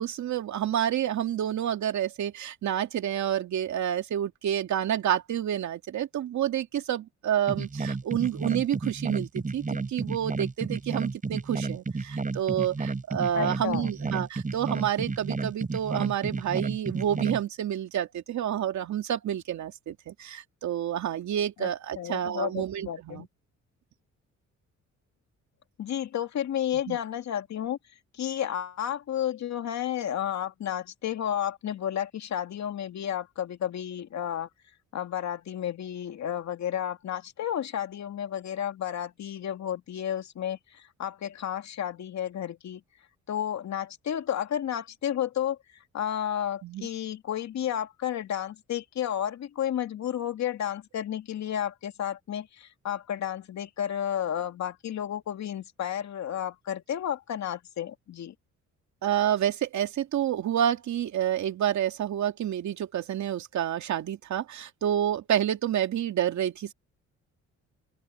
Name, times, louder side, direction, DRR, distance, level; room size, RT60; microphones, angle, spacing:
voice 1, 0.0-23.2 26.9-27.0 46.6-46.9 59.0-66.7, right 10 dB, 70° right, 2.5 m, -29 dB
sound 1, 7.5-17.4, right 3 dB, 25° right, 5.8 m, -31 dB
voice 2, 13.3-13.9 21.6-23.3 25.8-27.8 28.1-34.5 34.9-42.8 43.3-58.3, left 10 dB, 65° left, 2.4 m, -32 dB
open air
cardioid pair, 90°, 30 cm